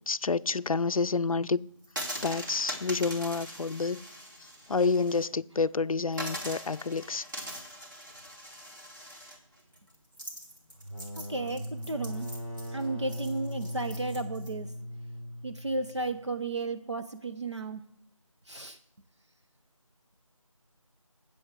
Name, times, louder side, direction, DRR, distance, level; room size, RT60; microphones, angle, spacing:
voice 1, 0.1-1.6 2.2-4.0 4.7-7.3, left 4 dB, 90° left, 0.5 m, -28 dB
sound 1, 1.8-5.3 5.6-5.7 6.1-14.5, equal, 35° right, 2.8 m, -42 dB
sound 2, 10.7-16.2, equal, 80° right, 4.0 m, -39 dB
voice 2, 11.2-12.3 12.7-14.7 15.4-17.8 18.5-18.8, right 3 dB, 55° right, 0.8 m, -34 dB
7.8 x 7.1 x 8.1 m
figure-of-eight pair, 180°, 17 cm